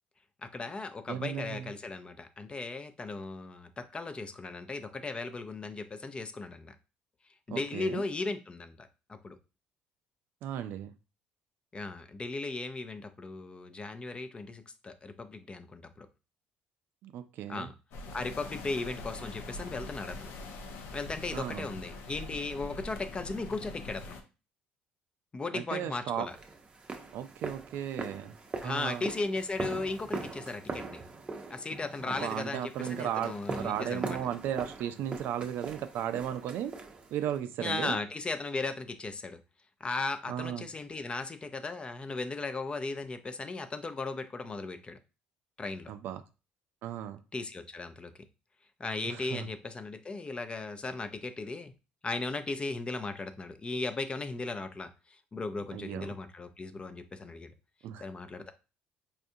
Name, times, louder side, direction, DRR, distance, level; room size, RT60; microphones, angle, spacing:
voice 1, 0.4-6.8 7.5-9.4 11.7-16.1 17.5-17.7 18.1-20.3 20.9-24.2 25.3-26.4 28.6-31.0 31.5-34.2 37.6-39.4 39.8-45.0 45.6-45.9 47.3-48.2 48.8-51.7 52.0-57.5 58.0-58.5, left 3 dB, 25° left, 9 dB, 0.5 m, -37 dB
voice 2, 1.1-1.7 7.5-8.0 10.4-10.9 17.0-17.7 21.3-21.7 25.5-26.3 27.1-28.4 28.6-29.0 32.1-36.7 37.1-38.0 40.3-40.7 45.9-46.2 46.8-47.2 49.1-49.5 55.7-56.1 57.8-58.1, right 10 dB, 70° right, 10 dB, 0.4 m, -35 dB
sound 1, 17.9-24.2, left 2 dB, 75° left, 0.6 m, -43 dB
sound 2, 26.3-37.4, right 3 dB, 25° right, 0.6 m, -41 dB
4.3 x 2.4 x 2.7 m, 0.30 s
supercardioid pair, 85°, 4 cm